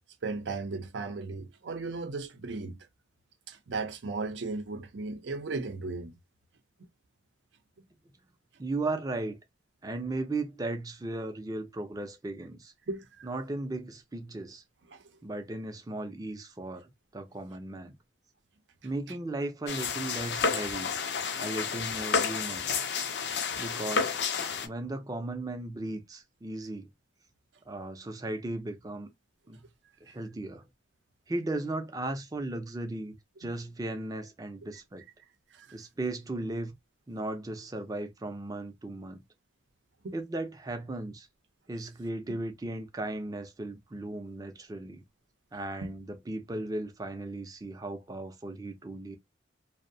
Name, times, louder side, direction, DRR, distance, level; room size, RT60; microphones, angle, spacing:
voice 1, 0.2-2.8 3.5-6.1 12.9-13.3 14.9-15.0 33.4-33.5 35.5-35.8 40.0-40.2 42.3-42.4 45.8-45.9, right 3 dB, 80° right, 0.5 m, -36 dB
voice 2, 8.6-9.4 9.8-12.7 13.2-14.6 15.2-18.0 18.8-20.9 21.4-22.7 23.6-24.2 24.6-26.9 27.7-29.1 29.5-29.7 30.0-30.6 31.3-33.1 33.4-35.0 35.7-36.7 37.1-39.2 40.1-41.3 41.7-45.0 45.5-49.2, right 2 dB, 20° right, 0.4 m, -36 dB
sound 1, 19.7-24.7, left 5 dB, 65° left, 0.4 m, -30 dB
2.6 x 2.0 x 2.6 m
head